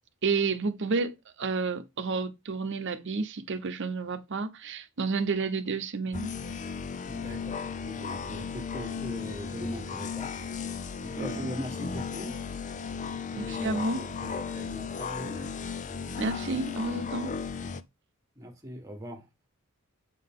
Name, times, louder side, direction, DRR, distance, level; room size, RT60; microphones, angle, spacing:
voice 1, 0.2-6.3 11.2-11.5 13.4-14.1 16.2-17.3, right 4 dB, 60° right, 0.8 m, -30 dB
sound 1, 6.1-17.8, left 5 dB, 35° left, 0.5 m, -35 dB
voice 2, 7.0-10.3 11.0-12.4 13.3-15.5 18.3-19.3, equal, 15° right, 1.6 m, -41 dB
8.2 x 3.9 x 3.7 m
head